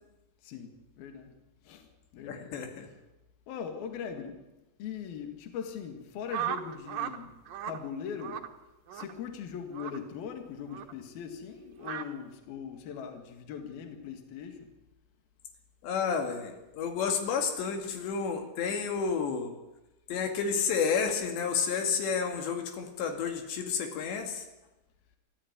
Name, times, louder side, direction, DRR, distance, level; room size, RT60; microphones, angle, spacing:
voice 1, 1.0-1.3 1.7-1.9 2.1-2.5 3.5-4.4 4.8-7.3 7.7-8.4 8.9-14.7, left 7 dB, 60° left, 5 dB, 3.7 m, -40 dB
voice 2, 2.2-2.9 15.8-19.5 20.1-24.4, left 6 dB, 80° left, 4 dB, 4.3 m, -31 dB
sound 1, 6.3-7.2 7.5-7.8 8.2-8.5 8.9-9.1 9.7-10.0 10.7-10.9 11.8-12.1, right 10 dB, 65° right, 2.7 m, -35 dB
25.0 x 14.5 x 9.4 m, 0.99 s
omnidirectional pair, 5.0 m